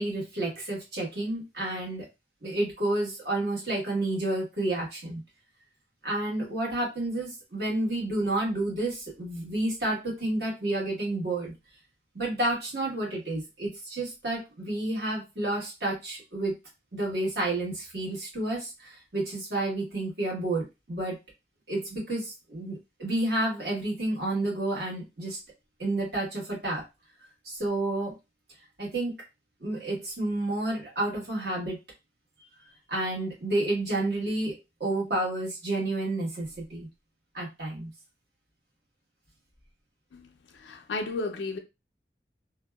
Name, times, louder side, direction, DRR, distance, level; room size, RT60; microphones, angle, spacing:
voice 1, 0.0-2.1 2.4-5.2 6.0-11.5 12.1-16.5 16.9-21.1 21.7-25.4 25.8-26.8 27.4-28.2 28.8-29.1 29.6-31.8 32.9-36.9 37.3-37.9, right 2 dB, 60° right, 1.3 m, -30 dB
voice 2, 40.5-41.6, left 3 dB, 85° left, 0.4 m, -33 dB
2.7 x 2.2 x 2.2 m
head